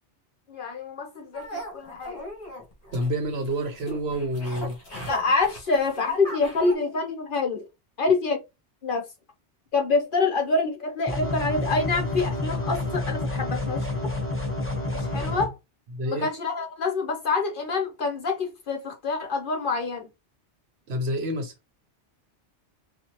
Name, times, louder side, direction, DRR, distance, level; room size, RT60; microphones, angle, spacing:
voice 1, 0.5-2.2 5.0-7.6 8.0-8.4 8.8-9.0 9.7-14.1 14.9-15.5 16.0-20.1, left 3 dB, 55° left, 0.8 m, -26 dB
sound 1, 1.3-6.7, equal, 35° left, 1.5 m, -38 dB
voice 2, 2.9-4.8 15.9-16.3 20.9-21.5, equal, 65° right, 1.1 m, -28 dB
sound 2, 11.1-15.5, left 2 dB, 10° left, 0.8 m, -29 dB
4.1 x 2.5 x 2.9 m
omnidirectional pair, 1.2 m